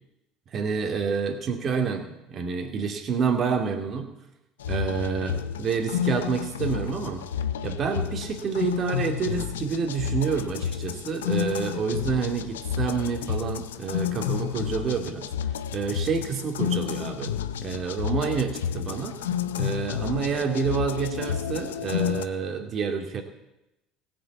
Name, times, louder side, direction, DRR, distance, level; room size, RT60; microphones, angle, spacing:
voice 1, 0.5-4.1 4.7-7.2 7.6-15.3 15.7-17.3 17.6-23.2, right 6 dB, 45° right, 4 dB, 2.4 m, -28 dB
sound 1, 4.6-22.2, left 9 dB, 90° left, 0.6 m, -30 dB
16.5 x 6.7 x 8.4 m, 0.91 s
hypercardioid pair, 75°, 0 cm